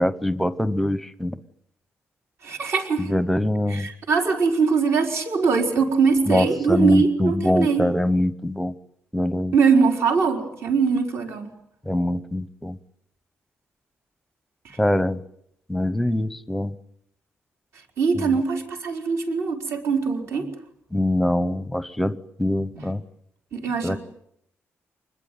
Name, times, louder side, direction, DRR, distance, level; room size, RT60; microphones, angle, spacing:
voice 1, 0.0-1.4 3.0-3.9 6.3-8.7 9.1-9.5 11.9-12.8 14.8-15.2 15.7-16.7 18.2-18.4 20.9-23.0 23.8-24.0, left 1 dB, 5° left, 15 dB, 0.9 m, -23 dB
voice 2, 2.4-3.1 3.7-7.8 9.5-11.5 18.0-20.5 22.7-22.8 23.5-24.0, right 5 dB, 55° right, 3 dB, 4.4 m, -22 dB
25.5 x 20.5 x 9.3 m, 0.73 s
wide cardioid pair, 160°, 5 cm